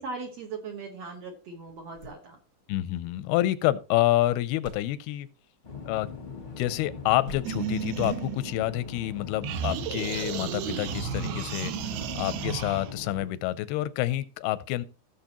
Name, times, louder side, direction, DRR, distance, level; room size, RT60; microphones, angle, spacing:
voice 1, 0.0-2.4 11.1-11.4, right 4 dB, 60° right, 1.8 m, -39 dB
sound 1, 1.7-5.5 5.7-6.4 6.7-8.8 9.6-9.7 11.0-11.1, left 1 dB, 45° right, 2.4 m, -48 dB
voice 2, 2.7-5.3 5.9-6.1 6.6-14.9, left 15 dB, 85° left, 2.6 m, -28 dB
sound 2, 5.6-13.3, left 5 dB, 50° left, 0.8 m, -41 dB
sound 3, 7.4-9.1 9.4-12.9, right 8 dB, 80° right, 2.9 m, -33 dB
16.0 x 7.0 x 3.0 m
omnidirectional pair, 4.4 m